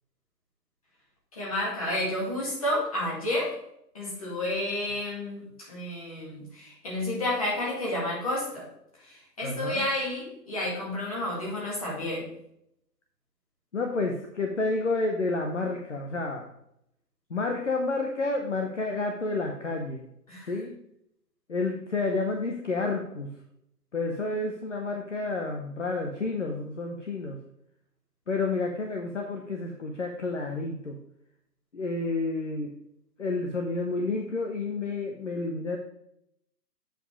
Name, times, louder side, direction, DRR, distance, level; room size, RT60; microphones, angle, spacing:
voice 1, 1.3-3.5 3.9-8.7 9.0-12.3 20.3-20.5, left 1 dB, 20° left, -5 dB, 2.0 m, -31 dB
voice 2, 9.4-9.9 13.7-16.5 17.3-20.0 20.5-20.8 21.5-23.3 23.9-27.4 28.3-31.0 31.7-32.7 33.2-35.8, left 3 dB, 50° left, 2 dB, 0.8 m, -30 dB
7.8 x 5.0 x 4.9 m, 0.77 s
hypercardioid pair, 175°, 49 cm